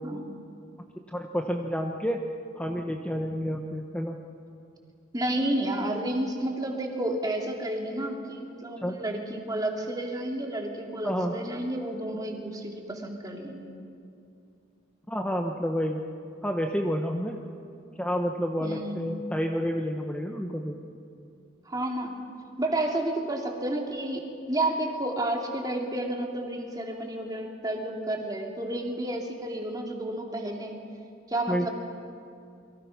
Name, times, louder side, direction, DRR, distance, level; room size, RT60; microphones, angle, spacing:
voice 1, 1.1-2.2 2.6-4.2 8.8-9.0 11.0-11.3 15.1-16.0 16.4-17.4 18.0-20.8 31.5-31.7, equal, 5° left, 2 dB, 1.0 m, -29 dB
voice 2, 5.1-13.7 18.6-19.0 21.6-22.2 22.6-30.8 31.3-31.7, right 1 dB, 20° right, 1 dB, 2.7 m, -31 dB
29.0 x 23.5 x 5.9 m, 2.6 s
head